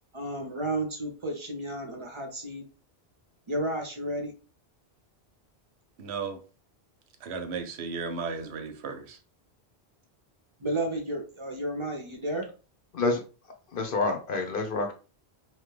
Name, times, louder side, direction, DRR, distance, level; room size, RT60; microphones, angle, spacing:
voice 1, 0.1-2.6 3.5-4.3 10.6-12.5, right 1 dB, 35° right, 0.5 m, -32 dB
voice 2, 6.0-6.4 7.2-9.2, right 5 dB, 85° right, 0.9 m, -35 dB
voice 3, 13.7-14.9, left 3 dB, 60° left, 0.8 m, -27 dB
2.9 x 2.2 x 3.2 m
omnidirectional pair, 1.1 m